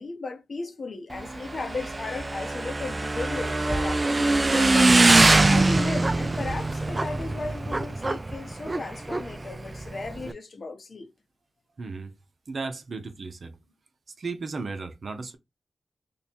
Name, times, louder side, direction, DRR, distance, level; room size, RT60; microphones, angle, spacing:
voice 1, 0.0-5.0 5.5-11.1, left 3 dB, 60° left, 0.8 m, -35 dB
Motorcycle / Engine, 1.1-10.3, right 2 dB, 35° right, 0.3 m, -23 dB
voice 2, 11.8-12.1 12.5-13.5 14.2-15.4, right 4 dB, 65° right, 0.7 m, -35 dB
3.1 x 2.3 x 4.3 m
cardioid pair, 45°, 0 cm